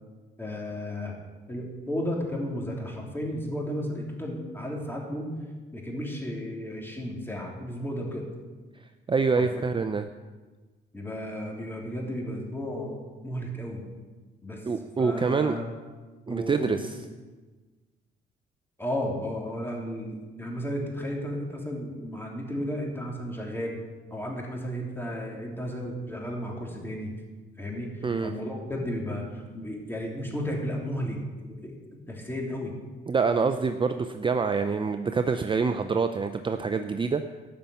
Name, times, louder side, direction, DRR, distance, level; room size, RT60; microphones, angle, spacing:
voice 1, 0.4-1.1 1.5-5.3 5.7-8.3 9.4-9.5 10.9-13.8 14.4-14.6 15.0-15.6 16.3-16.8 18.8-23.8 24.1-27.2 27.6-31.7 32.1-32.8, equal, 10° left, -1 dB, 3.2 m, -33 dB
voice 2, 9.1-10.1 14.6-15.6 16.3-17.0 28.0-28.3 33.1-37.2, right 4 dB, 25° right, 8 dB, 0.5 m, -26 dB
13.0 x 5.7 x 9.1 m, 1.3 s
cardioid pair, 90°, 20 cm